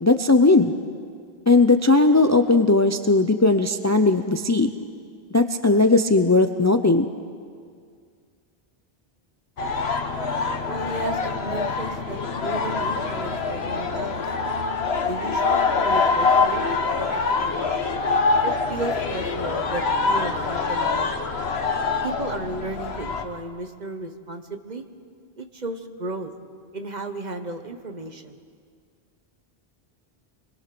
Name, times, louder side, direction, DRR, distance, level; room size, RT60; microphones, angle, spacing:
voice 1, 0.0-0.7 1.5-4.7 5.3-7.1, left 3 dB, 20° left, 8 dB, 0.5 m, -18 dB
sound 1, 9.6-23.2, left 4 dB, 85° left, 1.4 m, -24 dB
voice 2, 10.7-14.6 15.1-16.6 17.0-18.0 18.4-21.4 22.0-24.8 25.4-26.3 26.7-28.4, right 2 dB, 45° right, 7 dB, 1.3 m, -34 dB
25.5 x 21.5 x 6.1 m, 2.1 s
omnidirectional pair, 1.0 m